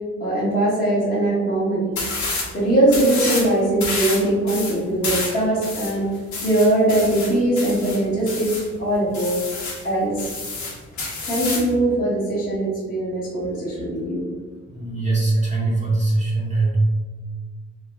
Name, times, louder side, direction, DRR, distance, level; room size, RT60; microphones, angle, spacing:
voice 1, 0.2-2.0 2.5-6.1 6.4-9.4 9.8-10.3 11.2-14.3, right 1 dB, 30° left, -9 dB, 0.9 m, -21 dB
sound 1, 2.0-2.5 2.9-3.5 3.8-8.7 9.1-9.8 10.2-11.7, left 3 dB, 70° left, 0.9 m, -28 dB
voice 2, 14.7-16.8, right 2 dB, 25° right, -6 dB, 0.7 m, -22 dB
3.2 x 2.2 x 2.2 m, 1.5 s
cardioid pair, 90°, 30 cm